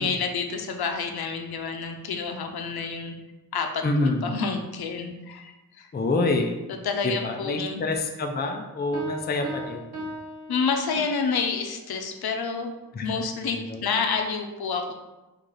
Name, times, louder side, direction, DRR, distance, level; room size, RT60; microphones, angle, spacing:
voice 1, 0.0-3.2 3.5-5.9 6.8-7.8 10.5-12.7 13.0-14.9, left 5 dB, 80° left, 4 dB, 0.6 m, -29 dB
voice 2, 3.8-4.3 5.9-6.6 7.0-9.8 12.9-13.2 13.7-13.8, left 2 dB, 25° left, 3 dB, 0.4 m, -26 dB
Piano, 8.9-11.3, equal, 45° right, 0.8 m, -38 dB
4.6 x 2.5 x 3.8 m, 1.1 s
wide cardioid pair, 165°, 38 cm